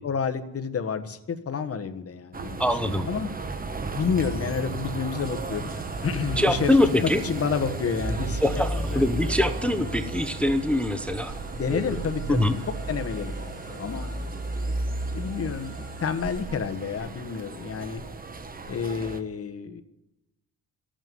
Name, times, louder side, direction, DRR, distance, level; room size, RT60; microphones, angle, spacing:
voice 1, 0.0-2.6 3.0-3.3 3.9-5.7 6.0-8.6 8.9-9.0 11.5-14.1 15.1-18.0 18.7-19.8, left 6 dB, 40° left, 8 dB, 1.4 m, -30 dB
sound 1, 2.3-19.2, right 3 dB, 25° right, 1.1 m, -33 dB
voice 2, 2.6-3.1 6.4-7.2 8.4-11.4 11.7-12.0 12.3-12.6, left 1 dB, 5° left, 10 dB, 0.8 m, -23 dB
sound 2, 5.1-16.4, right 1 dB, 45° right, 7.2 m, -50 dB
14.0 x 8.9 x 9.4 m, 0.93 s
cardioid pair, 125°, 35 cm